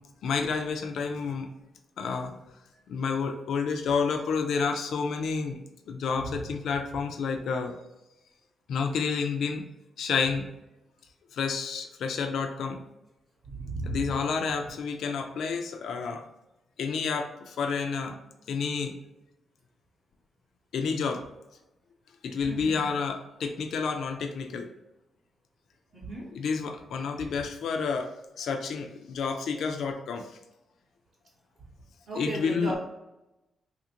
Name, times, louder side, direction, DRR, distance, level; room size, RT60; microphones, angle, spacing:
voice 1, 0.2-1.5 2.0-2.3 2.9-5.6 5.9-7.8 8.7-9.6 10.0-10.5 11.3-12.8 13.8-16.2 16.8-18.1 18.5-18.9 20.7-21.2 22.2-24.7 26.3-28.1 28.4-30.3 32.1-32.8, left 5 dB, 70° left, 4 dB, 0.4 m, -30 dB
voice 2, 13.5-14.0 22.5-22.8 25.9-26.3 32.1-32.8, right 1 dB, 40° right, -6 dB, 0.7 m, -35 dB
3.3 x 2.5 x 2.8 m, 0.94 s
wide cardioid pair, 175°, 0 cm